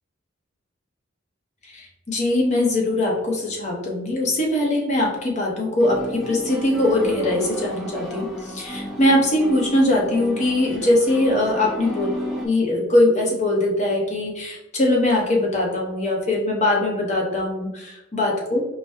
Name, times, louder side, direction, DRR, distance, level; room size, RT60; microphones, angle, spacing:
voice 1, 1.7-12.1 12.4-18.7, left 1 dB, 35° left, -1 dB, 0.9 m, -21 dB
sound 1, 5.8-12.5, equal, ahead, 0.6 m, -33 dB
4.8 x 2.2 x 2.7 m, 0.98 s
head